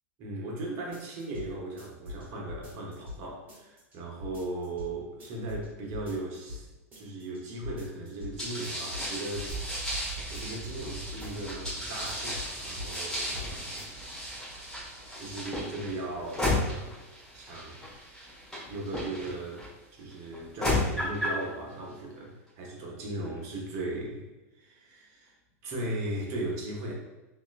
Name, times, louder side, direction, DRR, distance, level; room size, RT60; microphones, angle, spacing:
voice 1, 0.2-6.7 6.9-9.7 10.3-13.9 15.1-17.0 17.3-17.9 18.7-24.3 24.6-25.3 25.6-26.9, right 2 dB, 45° right, -2 dB, 0.9 m, -37 dB
sound 1, 0.9-1.5 1.8-3.2 3.5-3.9 4.2-4.9 5.2-5.7 5.9-6.6 6.9-7.4 7.6-8.3 8.6-10.1 10.3-10.8 11.1-11.8 12.1-12.5 12.8-13.5 13.8-13.9, left 3 dB, 25° right, 1.4 m, -42 dB
sound 2, 8.4-19.7 20.3-21.4, left 1 dB, 10° left, 1.2 m, -34 dB
sound 3, 9.5-19.5, right 4 dB, 40° left, 0.7 m, -46 dB
3.0 x 2.9 x 2.4 m, 1.1 s
supercardioid pair, 135°, 8 cm